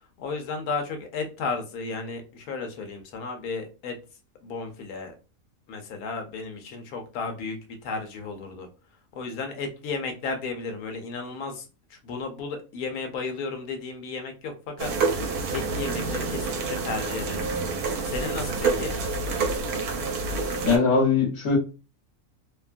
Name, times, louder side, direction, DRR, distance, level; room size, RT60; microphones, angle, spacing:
voice 1, 0.2-3.9 4.4-5.1 5.7-7.6 7.8-8.7 9.1-14.9 15.5-17.5 18.1-18.9, left 4 dB, 80° left, 4 dB, 1.1 m, -33 dB
sound 1, 14.8-20.8, right 4 dB, 80° right, 1.1 m, -28 dB
voice 2, 20.6-21.6, left 4 dB, 55° left, -1 dB, 1.2 m, -21 dB
2.8 x 2.2 x 2.4 m, 0.32 s
omnidirectional pair, 1.5 m